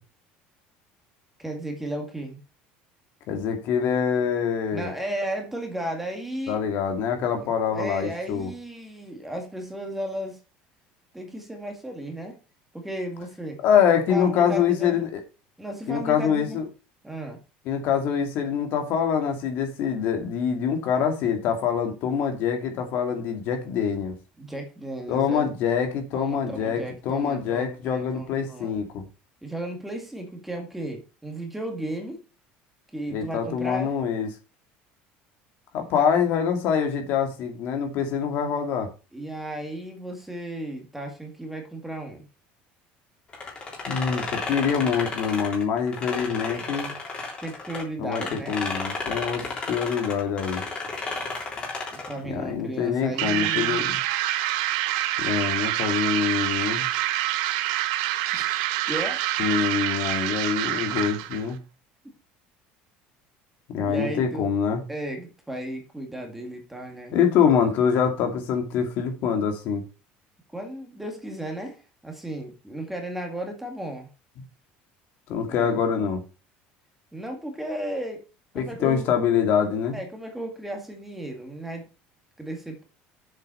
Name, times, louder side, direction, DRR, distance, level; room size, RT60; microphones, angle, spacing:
voice 1, 1.4-2.4 4.7-6.6 7.3-10.4 11.1-12.4 12.7-13.6 14.1-15.0 15.6-16.6 17.0-17.4 24.4-25.5 26.1-28.8 29.4-32.2 32.9-33.9 35.9-36.1 39.1-42.3 47.4-48.6 51.9-53.8 58.3-58.6 58.9-59.3 63.8-64.5 64.9-67.2 70.5-74.1 75.5-75.8 77.1-78.2 78.5-79.0 79.9-81.9 82.4-82.8, right 1 dB, 5° right, 2.1 m, -34 dB
voice 2, 3.3-4.9 6.5-8.5 13.6-15.2 15.9-16.6 17.7-24.1 25.1-29.0 33.1-34.3 35.7-38.9 43.9-46.9 48.0-50.6 52.3-54.0 55.2-56.9 59.4-61.6 63.7-64.8 67.1-69.8 75.3-76.2 78.6-80.0, left 7 dB, 55° left, 2.3 m, -25 dB
sound 1, 43.3-47.8 48.1-52.2, left 3 dB, 25° left, 3.3 m, -33 dB
sound 2, 53.2-61.5, right 14 dB, 85° right, 0.9 m, -26 dB
7.5 x 6.0 x 5.6 m
cardioid pair, 150°, 4 cm